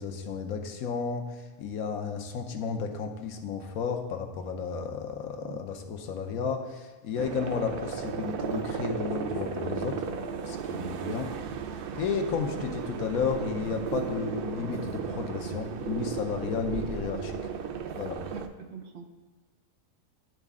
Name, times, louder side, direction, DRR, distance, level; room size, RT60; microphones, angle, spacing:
voice 1, 0.0-10.0 10.5-11.3 11.9-17.4 18.0-18.2, left 6 dB, 85° left, 4 dB, 1.2 m, -33 dB
sound 1, 7.2-18.5, right 6 dB, 85° right, 0.5 m, -35 dB
voice 2, 18.3-19.0, right 5 dB, 60° right, 4 dB, 0.8 m, -42 dB
12.0 x 4.1 x 3.6 m, 1.3 s
omnidirectional pair, 1.5 m